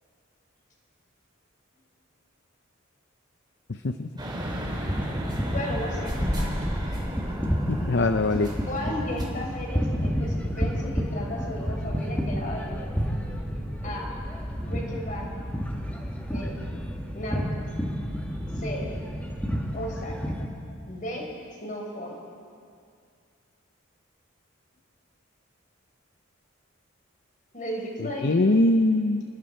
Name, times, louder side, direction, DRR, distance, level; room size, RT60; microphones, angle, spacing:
voice 1, 3.7-4.1 7.7-8.5 28.2-29.2, left 2 dB, 55° left, 8 dB, 0.7 m, -22 dB
sound 1, 4.2-9.3, equal, 20° right, 3.5 m, -36 dB
sound 2, 4.4-20.5, equal, 10° left, 2.1 m, -30 dB
voice 2, 5.5-6.5 8.7-13.0 13.8-14.1 14.6-15.3 16.2-16.6 17.1-17.5 18.5-18.9 19.7-20.2 20.9-21.3 21.6-22.2 27.5-28.6, left 1 dB, 40° left, 0 dB, 4.7 m, -35 dB
30.0 x 20.5 x 4.5 m, 2.2 s
head